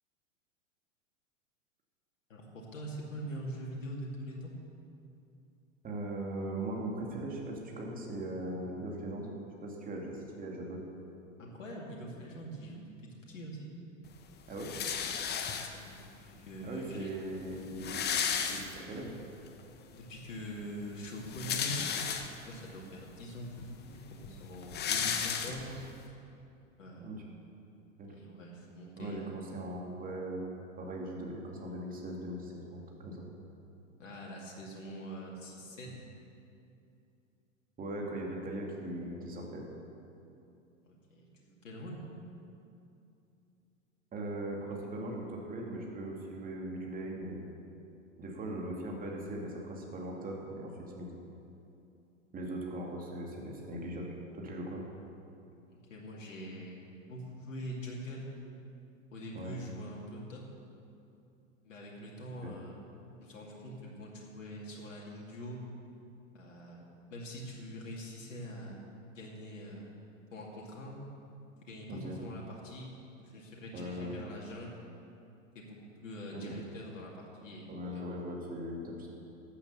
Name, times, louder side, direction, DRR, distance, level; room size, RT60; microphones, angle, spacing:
voice 1, 2.3-4.5 11.4-12.8 13.1-13.7 15.7-17.4 19.9-21.9 22.4-26.1 26.8-27.2 28.1-29.4 34.0-35.9 40.9-42.0 55.7-56.8 57.1-58.3 59.1-60.4 61.6-62.8 63.2-65.6 66.3-68.8 69.1-69.9 70.3-71.0 71.6-72.9 73.2-74.7 75.5-75.8 76.0-78.0, equal, 70° left, -3 dB, 2.5 m, -44 dB
voice 2, 5.8-9.3 9.6-10.8 14.5-14.7 16.6-18.0 18.5-19.1 27.0-27.2 28.0-28.1 29.0-30.4 30.8-33.2 37.8-39.6 44.1-47.4 48.2-51.1 52.3-54.0 54.3-54.8 59.3-59.6 62.4-62.5 71.9-72.2 73.7-74.2 76.3-76.6 77.7-79.1, right 1 dB, 20° right, -1 dB, 2.5 m, -39 dB
sound 1, 14.6-16.0 16.9-17.0 17.2-17.3 17.5-19.1 19.6-19.7 21.1-22.6 23.2-23.3 23.6-25.9, left 7 dB, 25° left, 1.0 m, -34 dB
13.0 x 8.3 x 7.0 m, 2.7 s
figure-of-eight pair, 95°, 39 cm